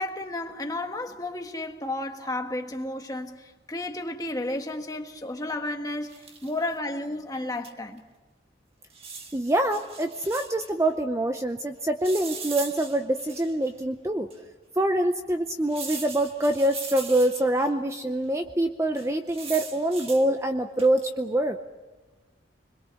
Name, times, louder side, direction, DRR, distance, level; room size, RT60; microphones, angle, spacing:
voice 1, 0.0-8.0, left 2 dB, 20° left, 1.4 m, -32 dB
sound 1, 6.0-6.6 7.6-7.7 8.0-8.1 8.9-10.7 12.0-13.7 14.3-14.4 15.7-17.7 19.0-20.3 20.8-21.1, right 5 dB, 30° right, 1.6 m, -39 dB
voice 2, 9.3-14.3 14.8-21.6, right 1 dB, 15° right, 0.6 m, -25 dB
26.0 x 21.5 x 6.5 m
head